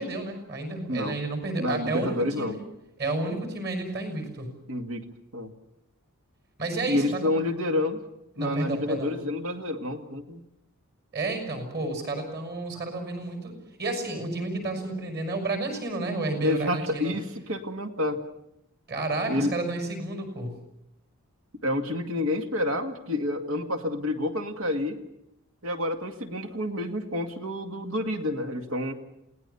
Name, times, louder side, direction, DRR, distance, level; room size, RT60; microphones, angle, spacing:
voice 1, 0.0-2.6 3.0-4.5 6.6-7.3 8.4-9.1 11.1-17.1 18.9-20.6, right 2 dB, 45° right, 6 dB, 6.2 m, -31 dB
voice 2, 1.6-2.6 4.7-5.0 5.3-5.5 6.9-8.0 8.4-10.4 16.4-18.2 19.3-19.5 21.6-25.0 25.6-28.9, left 1 dB, 75° right, 6 dB, 2.2 m, -29 dB
28.0 x 18.0 x 7.0 m, 0.84 s
head